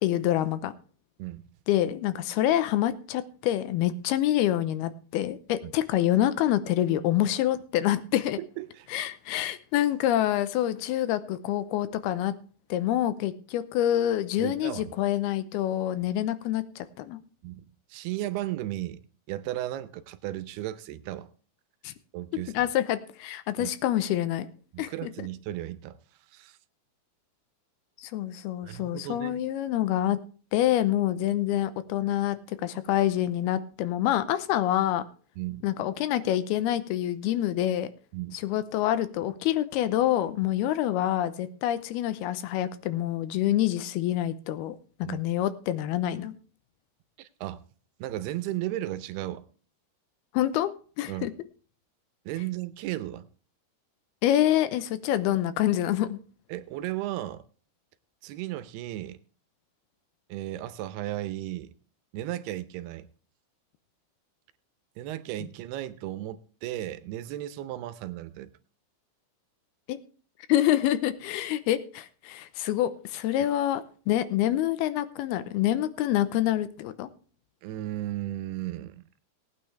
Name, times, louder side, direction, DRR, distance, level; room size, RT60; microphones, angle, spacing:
voice 1, 0.0-0.7 1.7-8.4 8.9-12.3 12.7-17.2 21.8-21.9 22.5-24.5 24.8-25.1 28.0-30.2 30.5-35.0 35.6-37.9 38.3-46.3 50.3-51.3 54.2-56.2 65.4-65.5 69.9-70.0 70.5-77.1, left 12 dB, 85° left, 13 dB, 2.8 m, -26 dB
voice 2, 8.4-8.9 14.4-14.9 17.4-17.7 17.9-19.0 19.3-21.3 22.1-22.5 23.6-23.7 24.7-26.0 26.3-26.6 28.6-29.4 35.4-35.7 38.1-38.4 45.0-45.2 47.2-47.6 48.0-49.5 51.1-51.3 52.3-53.3 56.5-57.4 58.2-59.2 60.3-61.7 62.1-63.1 65.0-68.5 77.6-79.1, right 14 dB, 90° right, 13 dB, 2.8 m, -35 dB
18.5 x 9.3 x 3.3 m, 0.39 s
omnidirectional pair, 4.5 m